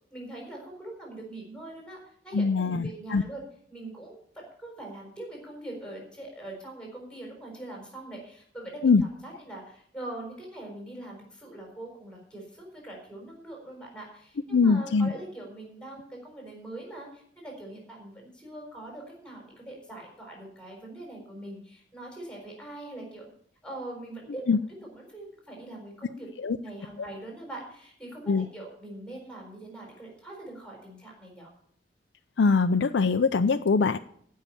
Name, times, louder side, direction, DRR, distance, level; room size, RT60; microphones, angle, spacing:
voice 1, 0.1-2.0 2.2-3.4 3.7-8.9 9.2-23.3 23.6-24.6 24.9-31.5, right 1 dB, 5° left, 0 dB, 4.2 m, -42 dB
voice 2, 2.3-3.2 8.8-9.0 14.5-15.1 24.5-24.6 26.4-26.6 28.3-28.4 32.4-34.0, left 4 dB, 80° left, 7 dB, 0.5 m, -22 dB
15.0 x 5.6 x 8.7 m, 0.64 s
head